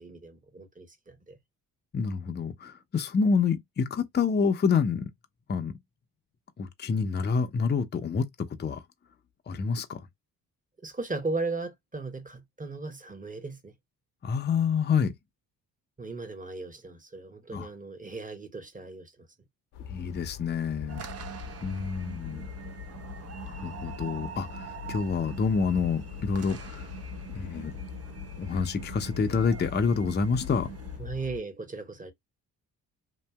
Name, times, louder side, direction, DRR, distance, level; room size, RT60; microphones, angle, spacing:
voice 1, 0.0-1.4 10.8-13.7 16.0-19.1 31.0-32.1, right 3 dB, 20° right, 1.0 m, -37 dB
voice 2, 1.9-5.1 5.5-5.8 6.6-8.3 8.6-8.8 9.5-10.0 14.2-15.1 17.5-17.7 19.9-21.0 21.6-22.5 23.4-26.9 27.3-27.8 28.4-30.7, left 5 dB, 25° left, 0.6 m, -27 dB
sound 1, 19.7-31.4, left 9 dB, 65° left, 0.8 m, -41 dB
sound 2, 20.9-31.0, right 8 dB, 35° right, 0.6 m, -44 dB
2.7 x 2.6 x 2.3 m
hypercardioid pair, 50°, 42 cm